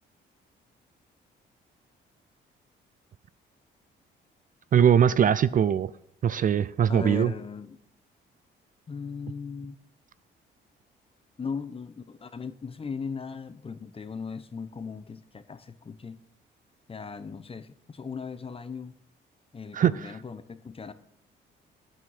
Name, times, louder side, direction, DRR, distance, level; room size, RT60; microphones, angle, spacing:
voice 1, 4.7-5.9 6.2-7.3 19.7-20.2, right 9 dB, 45° right, 0.4 m, -21 dB
voice 2, 6.9-7.8 8.9-9.8 11.4-16.2 16.9-18.9 19.5-20.9, left 5 dB, 30° left, 0.8 m, -38 dB
8.8 x 5.7 x 6.3 m
cardioid pair, 90°, 20 cm